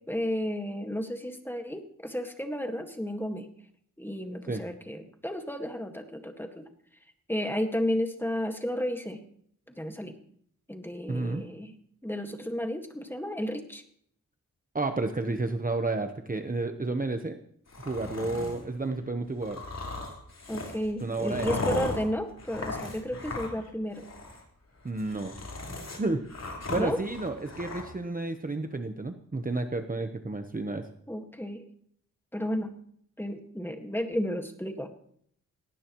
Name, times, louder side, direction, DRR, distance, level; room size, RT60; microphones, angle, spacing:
voice 1, 0.1-3.5 4.0-6.7 7.3-9.2 9.7-10.1 10.7-11.7 12.0-13.8 20.5-24.0 26.7-27.0 31.1-31.6 32.3-32.7 33.2-34.9, equal, 5° left, 5 dB, 1.8 m, -32 dB
voice 2, 11.1-11.4 14.7-17.4 17.9-19.6 21.0-21.6 24.8-25.4 25.9-26.2 26.7-30.9, right 2 dB, 25° right, 6 dB, 1.0 m, -31 dB
sound 1, 17.7-18.6 19.4-23.7 23.9-24.4 24.9-27.8, left 2 dB, 55° left, 4.3 m, -37 dB
18.5 x 17.5 x 3.1 m, 0.66 s
wide cardioid pair, 105°, 32 cm